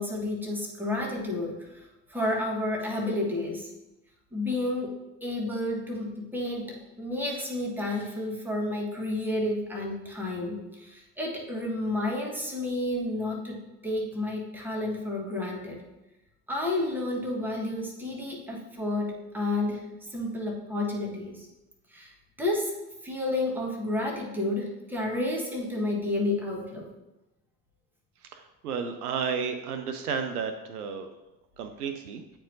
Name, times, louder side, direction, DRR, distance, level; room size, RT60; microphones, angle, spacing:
voice 1, 0.0-3.7 4.3-4.9 5.2-13.6 13.8-15.8 16.5-19.8 20.1-21.5 21.9-22.1 22.4-22.7 23.0-26.9, left 2 dB, 5° right, -2 dB, 1.4 m, -31 dB
voice 2, 28.2-31.1 31.6-32.2, right 6 dB, 70° right, 7 dB, 0.6 m, -32 dB
8.8 x 4.5 x 2.7 m, 0.99 s
figure-of-eight pair, 60°, 47 cm